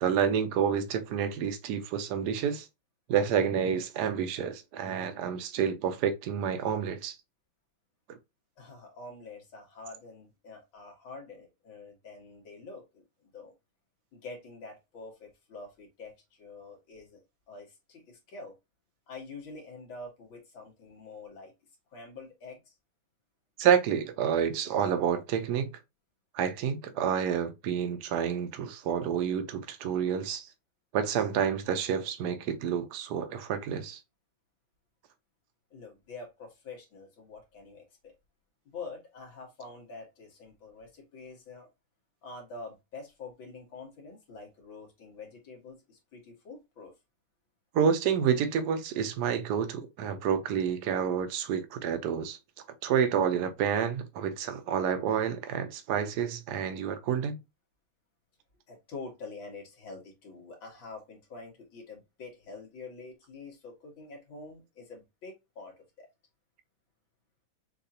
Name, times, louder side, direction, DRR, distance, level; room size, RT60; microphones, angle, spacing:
voice 1, 0.0-2.7 3.1-7.2 23.6-25.8 26.3-30.5 30.9-34.0 47.7-52.4 52.8-57.4, right 8 dB, 65° right, 1.2 m, -29 dB
voice 2, 8.6-13.5 14.1-18.5 19.1-21.5 21.9-22.7 35.7-38.1 38.7-41.7 42.2-46.9 58.7-66.1, left 3 dB, 75° left, 2.5 m, -46 dB
6.6 x 2.5 x 2.8 m
omnidirectional pair, 2.2 m